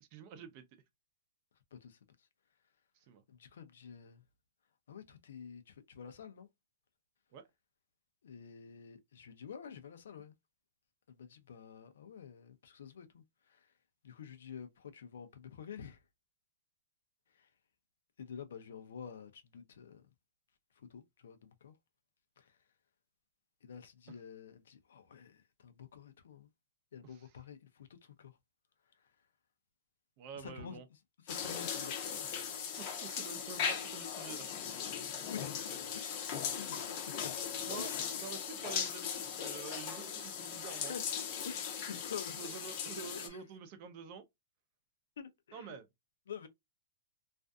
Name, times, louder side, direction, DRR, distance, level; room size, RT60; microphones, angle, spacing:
voice 1, 0.0-0.6 3.1-3.2 7.3-7.5 24.1-24.2 27.0-27.4 30.2-30.9 31.4-31.5 32.7-34.5 37.7-41.0 42.4-44.2 45.5-45.9, right 6 dB, 35° right, 0.5 m, -48 dB
voice 2, 3.3-4.2 4.9-6.5 8.2-10.3 11.1-13.7 14.0-16.0 17.4-17.5 18.2-20.0 20.8-21.7 22.4-22.5 23.6-26.5 26.9-28.3 30.3-30.8 31.2-32.2 35.2-35.6 35.9-36.2 36.6-37.3 37.8-38.1 40.9-41.0 41.5-43.4 45.2-45.8 46.3-46.5, left 7 dB, 80° left, 0.5 m, -49 dB
sound 1, 31.3-43.3, left 7 dB, 40° left, 0.6 m, -39 dB
2.5 x 2.5 x 2.2 m
hypercardioid pair, 155°, 0 cm